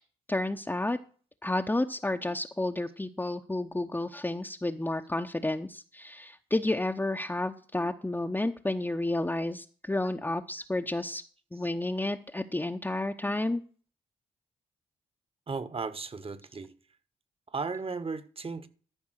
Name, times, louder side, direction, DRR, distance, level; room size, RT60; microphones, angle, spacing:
voice 1, 0.3-1.0 1.4-11.2 11.5-13.6, left 2 dB, 10° left, 0.9 m, -31 dB
voice 2, 15.5-16.7 17.5-18.7, right 4 dB, 35° right, 1.4 m, -36 dB
13.5 x 5.4 x 6.5 m
supercardioid pair, 50°, 16 cm